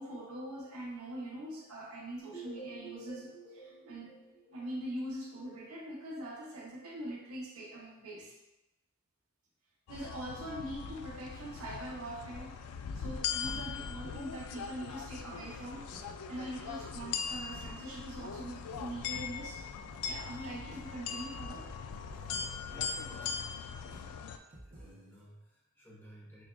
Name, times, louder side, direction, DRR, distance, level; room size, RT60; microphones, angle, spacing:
voice 1, 0.0-4.1 4.5-8.4 9.9-12.6 12.9-15.9 16.3-19.6 20.1-21.7, right 1 dB, 70° right, -3 dB, 0.9 m, -43 dB
sound 1, 2.2-5.1, right 2 dB, 45° left, 1.4 m, -49 dB
sound 2, 9.9-24.4, left 6 dB, 85° left, 0.3 m, -40 dB
sound 3, 15.3-25.2, right 1 dB, 40° right, 0.8 m, -57 dB
voice 2, 22.6-23.4 24.6-26.4, equal, 10° left, -5 dB, 0.8 m, -55 dB
6.0 x 2.3 x 2.4 m, 0.95 s
head